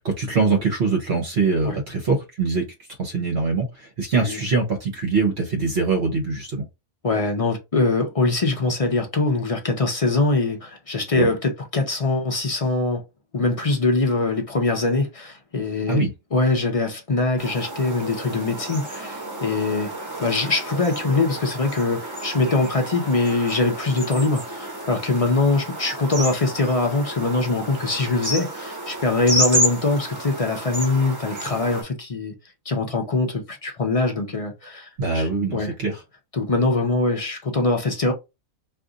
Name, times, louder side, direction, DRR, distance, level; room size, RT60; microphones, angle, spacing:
voice 1, 0.0-2.6 3.0-6.6 11.1-11.3 15.9-16.1 35.0-36.0, right 4 dB, 55° right, 1.0 m, -23 dB
voice 2, 7.0-13.0 13.3-16.0 16.3-19.9 20.2-32.3 32.7-34.9 35.1-35.7 36.3-38.1, left 3 dB, 40° left, 0.5 m, -23 dB
sound 1, 17.4-31.8, right 1 dB, 15° right, 0.9 m, -30 dB
2.5 x 2.5 x 3.8 m
omnidirectional pair, 1.4 m